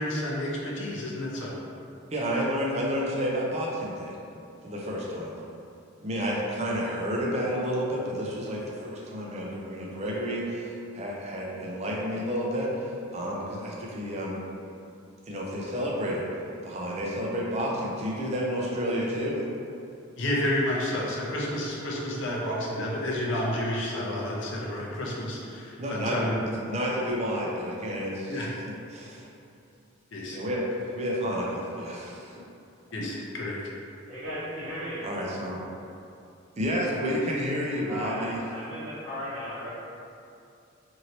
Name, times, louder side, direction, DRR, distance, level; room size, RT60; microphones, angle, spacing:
voice 1, 0.0-1.5 20.2-26.4 28.3-28.5 30.1-30.4 32.9-33.6, left 1 dB, 60° left, -4 dB, 0.6 m, -30 dB
voice 2, 2.1-4.2 4.6-5.3 6.0-14.4 15.3-16.3 16.6-19.4 25.8-29.3 30.3-30.7 30.9-32.4 35.0-35.6 36.6-38.4, equal, 30° right, -3 dB, 0.5 m, -30 dB
voice 3, 34.1-35.0 37.8-39.7, equal, 75° right, -13 dB, 0.9 m, -36 dB
3.1 x 2.7 x 2.8 m, 2.6 s
head